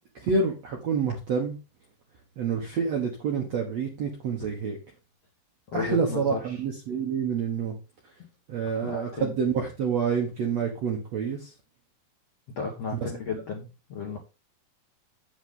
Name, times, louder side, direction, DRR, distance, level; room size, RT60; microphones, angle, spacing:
voice 1, 0.2-1.6 2.4-4.8 5.7-7.7 8.5-11.5, right 5 dB, 65° right, 1 dB, 1.7 m, -28 dB
voice 2, 5.7-6.6 8.8-9.4 12.6-14.2, left 5 dB, 60° left, -1 dB, 1.7 m, -34 dB
8.1 x 8.1 x 3.8 m, 0.30 s
omnidirectional pair, 4.9 m